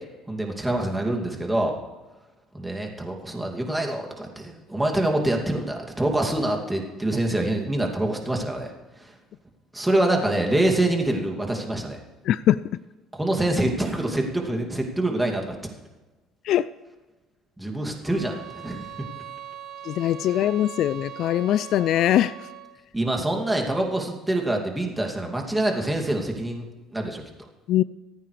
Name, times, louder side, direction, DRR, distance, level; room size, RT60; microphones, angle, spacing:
voice 1, 0.3-1.8 2.5-8.7 9.0-9.1 9.7-12.0 13.1-15.6 17.6-18.9 22.9-26.6 26.9-27.2, right 1 dB, 10° right, 1 dB, 2.5 m, -25 dB
voice 2, 12.3-12.6 16.5-16.7 19.9-22.3 27.7-27.8, left 12 dB, 65° left, 17 dB, 0.3 m, -21 dB
sound 1, 18.0-22.8, right 9 dB, 60° right, 1.5 m, -41 dB
25.5 x 9.3 x 3.3 m, 1.2 s
supercardioid pair, 95°, 0 cm